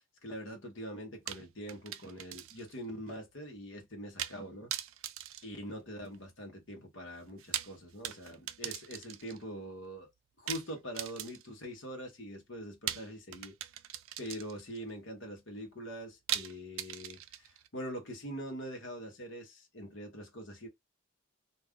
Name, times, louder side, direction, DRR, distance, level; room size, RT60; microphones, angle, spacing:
voice 1, 0.2-4.7 5.4-10.1 10.4-13.5 14.2-20.7, equal, 65° left, 1.0 m, -43 dB
sound 1, 1.3-2.8 3.1-3.2 4.2-4.4 4.7-6.2 7.3-9.4 10.5-11.7 12.9-14.8 16.3-17.7, right 12 dB, 80° right, 0.4 m, -40 dB
2.5 x 2.3 x 3.5 m
head